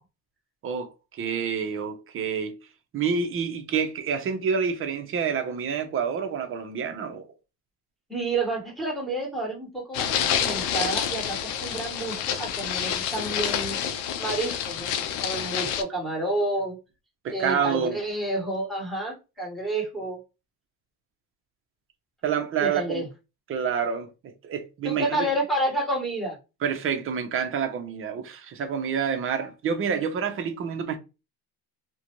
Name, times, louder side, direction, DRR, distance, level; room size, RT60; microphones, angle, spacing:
voice 1, 0.6-2.5 2.9-7.3 17.2-18.0 22.2-23.0 23.5-24.1 24.4-25.3 26.6-31.0, right 6 dB, 30° right, 0.6 m, -28 dB
voice 2, 8.1-13.8 14.2-16.8 17.3-20.2 22.6-23.1 24.8-26.4, right 1 dB, ahead, 1.2 m, -30 dB
sound 1, 9.9-15.8, left 9 dB, 70° left, 0.6 m, -28 dB
2.4 x 2.2 x 2.9 m
supercardioid pair, 110°, 44 cm